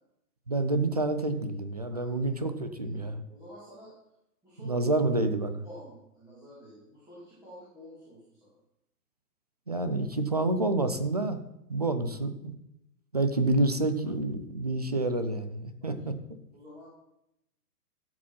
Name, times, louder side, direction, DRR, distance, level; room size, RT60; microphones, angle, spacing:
voice 1, 0.5-3.2 4.6-5.7 9.7-11.4 11.7-12.5 13.1-16.1, right 2 dB, 25° right, 9 dB, 0.4 m, -28 dB
voice 2, 2.8-3.9 4.4-5.0 5.6-8.6 15.8-15.9 16.5-16.9, equal, 10° right, -10 dB, 2.5 m, -50 dB
13.5 x 7.6 x 5.5 m, 0.84 s
hypercardioid pair, 175°, 47 cm